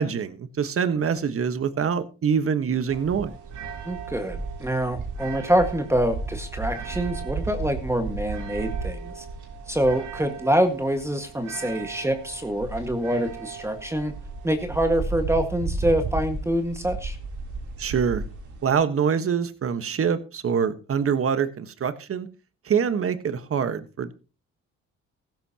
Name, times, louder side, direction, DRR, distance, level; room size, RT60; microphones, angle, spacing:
voice 1, 0.0-3.4 17.8-18.2 18.6-22.3 22.6-24.1, right 7 dB, 45° right, 11 dB, 1.4 m, -25 dB
sound 1, 2.9-18.7, right 4 dB, 75° right, 3.5 m, -34 dB
voice 2, 3.8-9.3 9.7-14.1 14.4-17.2, right 1 dB, 10° right, 6 dB, 1.7 m, -25 dB
15.0 x 14.0 x 2.9 m, 0.33 s
cardioid pair, 90°, 30 cm